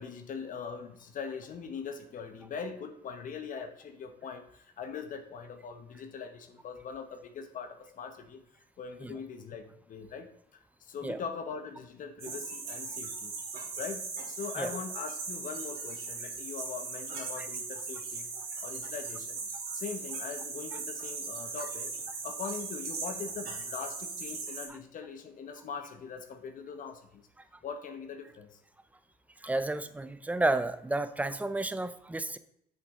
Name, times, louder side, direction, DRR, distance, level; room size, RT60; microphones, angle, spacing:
voice 1, 0.0-8.4 8.8-10.3 10.8-13.3 13.8-18.2 18.6-19.4 19.7-21.9 22.2-27.2 27.6-28.6, left 6 dB, 50° left, 6 dB, 1.0 m, -41 dB
sound 1, 12.2-24.7, right 4 dB, 65° right, 2.8 m, -39 dB
voice 2, 29.4-32.4, right 2 dB, 10° right, 12 dB, 0.6 m, -31 dB
8.2 x 7.0 x 3.7 m, 0.70 s
cardioid pair, 110°, 17 cm